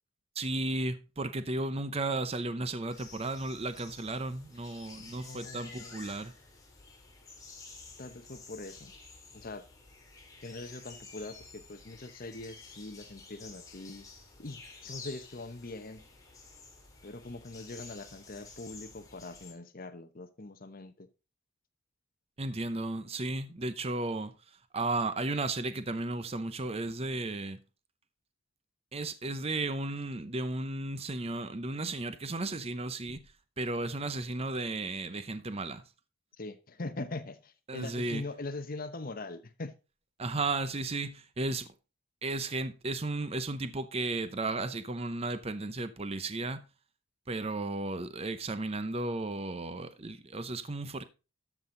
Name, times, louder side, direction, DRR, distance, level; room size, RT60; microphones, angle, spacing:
voice 1, 0.4-6.3 22.4-24.3 24.7-27.6 28.9-33.2 33.6-35.8 37.7-38.2 40.2-41.7 42.2-46.6 47.3-51.0, right 2 dB, 30° right, 0.7 m, -34 dB
sound 1, 2.9-19.5, left 4 dB, 15° left, 2.7 m, -51 dB
voice 2, 4.9-6.1 8.0-8.9 9.3-9.6 10.4-14.1 14.4-16.0 17.0-21.1 36.4-39.7, left 2 dB, 45° left, 0.9 m, -42 dB
13.0 x 6.1 x 3.8 m
head